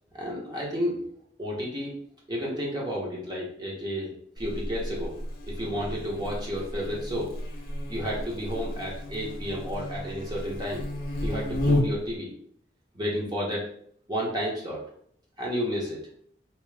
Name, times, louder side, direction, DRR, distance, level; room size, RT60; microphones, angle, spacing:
voice 1, 0.1-1.0 1.4-1.9 2.3-5.2 5.4-7.3 7.9-10.8 11.2-12.3 12.9-13.6 14.1-14.8 15.4-16.0, equal, 25° right, -3 dB, 1.0 m, -31 dB
Buzz, 4.4-12.1, left 1 dB, 55° left, 0.7 m, -32 dB
3.0 x 2.8 x 3.4 m, 0.63 s
head